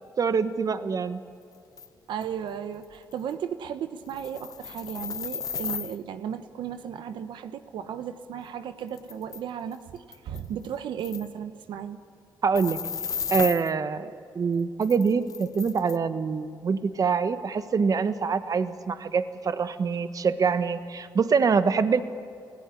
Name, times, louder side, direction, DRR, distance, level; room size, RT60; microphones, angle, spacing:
voice 1, 0.2-1.2 12.4-12.8 13.3-22.0, right 5 dB, 50° right, 11 dB, 1.2 m, -25 dB
sound 1, 1.8-1.9 2.2-2.3 2.8-2.9 3.1-3.3 4.0-6.0 8.4-8.5 8.9-9.4 9.7-9.8 10.1-10.7 11.0-11.3 12.5-13.7 14.8-16.0, left 6 dB, 50° left, 0.8 m, -34 dB
voice 2, 2.1-12.0, right 8 dB, 90° right, 10 dB, 1.1 m, -35 dB
29.0 x 17.5 x 9.9 m, 2.4 s
cardioid pair, 90°, 8 cm